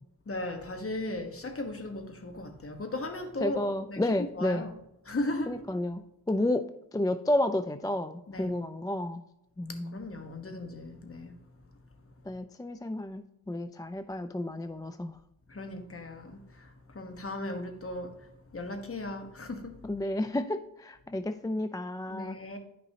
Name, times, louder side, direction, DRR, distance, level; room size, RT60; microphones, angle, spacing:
voice 1, 0.3-4.7 5.0-5.6 8.3-8.6 9.7-11.3 15.5-18.1 18.5-19.8 22.1-22.6, left 2 dB, 35° left, 1.3 m, -37 dB
voice 2, 3.4-4.7 5.5-6.0 6.3-6.6 6.9-9.2 9.6-10.0 12.3-15.2 19.8-22.4, left 1 dB, 10° left, 0.3 m, -31 dB
9.9 x 5.2 x 2.8 m
cardioid pair, 55°, 36 cm